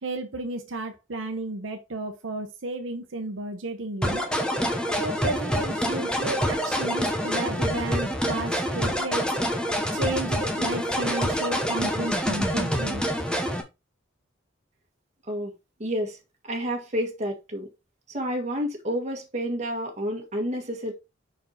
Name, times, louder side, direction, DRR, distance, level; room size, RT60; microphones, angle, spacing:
voice 1, 0.0-4.2 5.0-9.3 9.9-13.0, right 2 dB, 75° right, 0.9 m, -33 dB
sound 1, 4.0-13.6, equal, 5° left, 0.9 m, -26 dB
voice 2, 15.8-16.2 16.4-17.7 18.1-20.9, equal, 35° right, 1.7 m, -29 dB
5.5 x 4.6 x 4.2 m
head